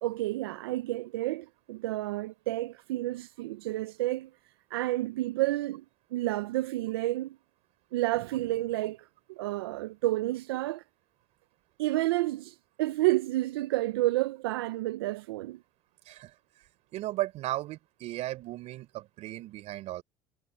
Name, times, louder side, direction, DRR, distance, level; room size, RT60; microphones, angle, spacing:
voice 1, 0.0-4.3 4.7-5.8 6.1-7.4 7.9-10.8 11.8-15.6, right 17 dB, 90° right, 0.6 m, -30 dB
voice 2, 16.9-20.0, right 16 dB, 65° right, 4.2 m, -35 dB
supercardioid pair, 90°, 12 cm